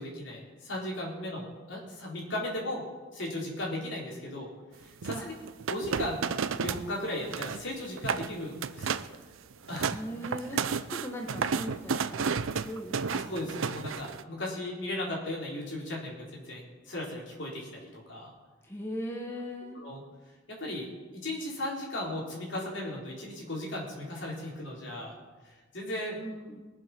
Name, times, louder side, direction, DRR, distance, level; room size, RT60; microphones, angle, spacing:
voice 1, 0.0-2.8 3.1-4.5 4.8-5.3 5.7-6.3 6.6-8.9 9.7-10.0 13.1-18.3 19.8-20.0 20.5-20.9 21.1-25.1 25.4-26.2, left 1 dB, 60° left, -2 dB, 3.8 m, -36 dB
voice 2, 5.0-5.3 9.9-13.3 18.6-19.8 26.2-26.6, equal, 10° left, 0 dB, 1.2 m, -39 dB
sound 1, 5.0-6.9 7.2-7.6 8.0-8.3 8.6-9.2 9.5-14.2, right 6 dB, 80° right, 0.5 m, -32 dB
21.5 x 7.3 x 6.0 m, 1.3 s
head